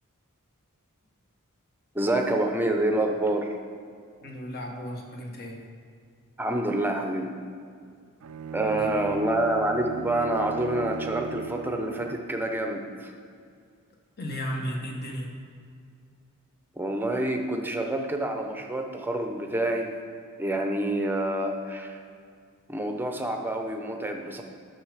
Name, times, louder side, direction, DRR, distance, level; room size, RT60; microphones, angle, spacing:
voice 1, 1.9-3.5 6.4-7.4 8.5-13.1 16.8-19.9 20.4-22.0 22.7-24.4, right 1 dB, 10° right, 3 dB, 0.7 m, -27 dB
voice 2, 4.2-5.6 8.6-8.9 14.2-15.3, equal, 45° left, 0 dB, 1.3 m, -35 dB
Bowed string instrument, 8.2-12.4, right 5 dB, 75° right, 0.4 m, -37 dB
9.9 x 6.4 x 4.9 m, 2.2 s
head